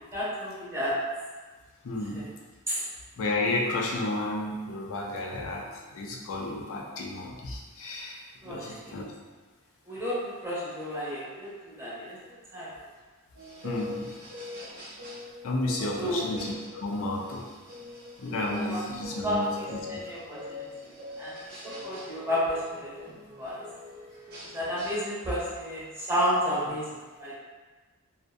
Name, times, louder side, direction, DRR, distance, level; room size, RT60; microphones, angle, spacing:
voice 1, 0.1-0.9 2.1-2.2 2.7-2.8 8.4-8.7 9.9-12.7 15.8-16.3 18.4-18.8 19.1-20.4 20.8-20.9 21.2-21.3 21.6-22.9 23.4-23.5 24.5-26.9 27.2-27.4, equal, 10° right, -9 dB, 0.7 m, -31 dB
voice 2, 1.8-2.3 3.2-9.1 13.6-14.1 15.4-17.5 18.2-20.0, left 2 dB, 65° left, -1 dB, 0.4 m, -32 dB
sound 1, 13.3-25.0, left 2 dB, 50° right, 0.7 m, -43 dB
2.5 x 2.1 x 2.4 m, 1.3 s
head